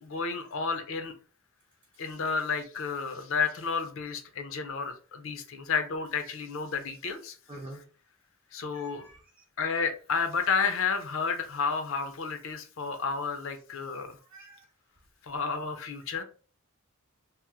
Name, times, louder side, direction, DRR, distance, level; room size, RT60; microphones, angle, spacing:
voice 1, 0.0-1.1 2.0-7.4 7.7-7.8 8.5-9.1 9.6-14.2 15.2-16.2, left 5 dB, 60° left, 8 dB, 0.5 m, -31 dB
voice 2, 7.5-7.8 8.7-9.2 14.3-14.6, right 1 dB, 25° right, -3 dB, 0.5 m, -45 dB
2.8 x 2.0 x 3.5 m, 0.40 s
head